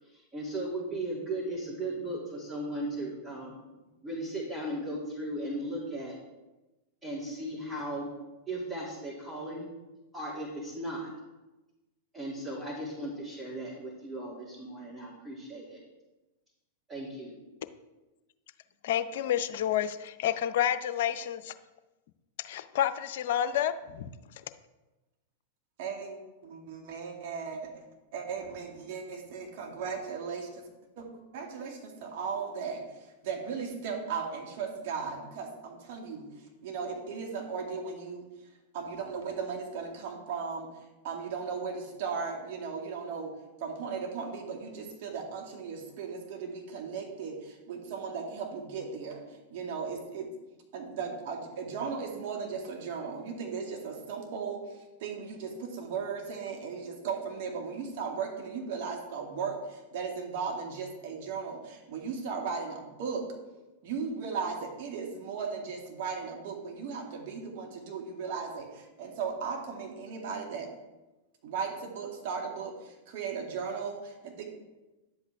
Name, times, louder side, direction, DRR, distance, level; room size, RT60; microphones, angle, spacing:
voice 1, 0.0-3.6 4.0-6.2 7.0-8.1 8.5-9.7 10.1-11.1 12.1-15.8 16.9-17.3, right 1 dB, 20° right, -5 dB, 2.5 m, -36 dB
voice 2, 18.8-21.5 22.4-24.1, left 10 dB, 60° left, 12 dB, 0.5 m, -29 dB
voice 3, 25.8-27.7 28.1-30.7 31.0-36.3 36.6-38.3 38.7-40.7 41.0-43.3 43.6-49.2 49.5-50.3 50.7-63.3 63.8-70.7 71.4-74.4, right 5 dB, 55° right, 1 dB, 2.1 m, -37 dB
10.5 x 8.0 x 3.5 m, 1.1 s
hypercardioid pair, 100°, 0 cm